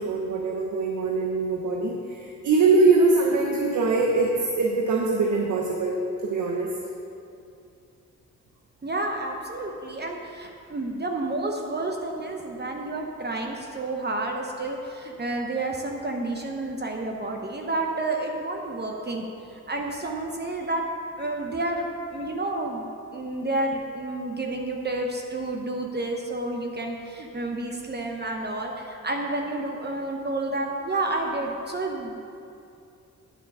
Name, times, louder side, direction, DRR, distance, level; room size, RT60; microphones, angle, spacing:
voice 1, 0.0-6.7 26.8-26.9, right 3 dB, 70° right, 0 dB, 0.9 m, -23 dB
voice 2, 8.8-19.3 19.5-20.8 21.2-22.8 23.1-32.2, right 2 dB, 35° right, 2 dB, 0.8 m, -30 dB
9.2 x 4.5 x 6.5 m, 2.6 s
cardioid pair, 65°, 31 cm